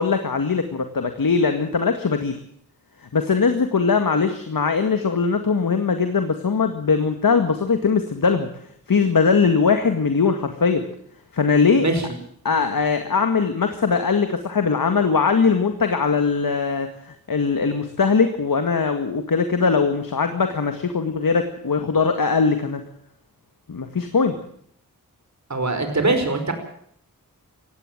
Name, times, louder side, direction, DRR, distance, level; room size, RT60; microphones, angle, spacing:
voice 1, 0.0-2.4 3.1-8.5 8.9-10.8 11.3-11.9 12.4-22.8 23.7-24.4, left 5 dB, 70° left, 7 dB, 2.0 m, -20 dB
voice 2, 25.5-26.5, right 2 dB, 50° right, 7 dB, 5.4 m, -22 dB
18.0 x 16.0 x 9.1 m, 0.65 s
wide cardioid pair, 65°, 35 cm